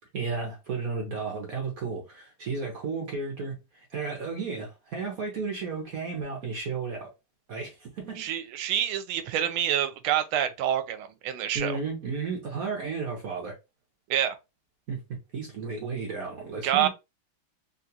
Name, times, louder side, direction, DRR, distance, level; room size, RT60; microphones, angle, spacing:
voice 1, 0.1-7.1 7.5-8.3 11.5-13.6 14.9-16.9, right 4 dB, 55° right, 1.0 m, -33 dB
voice 2, 8.2-11.8 14.1-14.4 16.6-16.9, right 10 dB, 80° right, 1.4 m, -27 dB
3.8 x 2.4 x 2.7 m
omnidirectional pair, 2.3 m